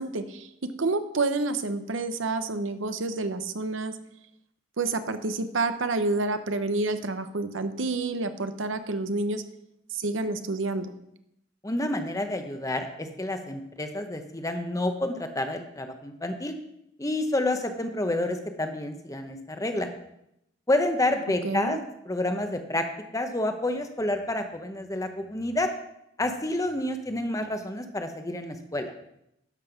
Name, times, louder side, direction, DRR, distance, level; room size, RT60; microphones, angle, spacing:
voice 1, 0.0-4.0 4.8-9.4 9.9-10.9 21.4-21.8, right 3 dB, 80° right, 10 dB, 0.8 m, -29 dB
voice 2, 11.6-16.5 17.0-19.9 20.7-21.8 22.1-22.8 23.1-25.7 26.2-28.9, left 1 dB, 15° left, 6 dB, 0.8 m, -29 dB
12.0 x 5.7 x 5.8 m, 0.81 s
head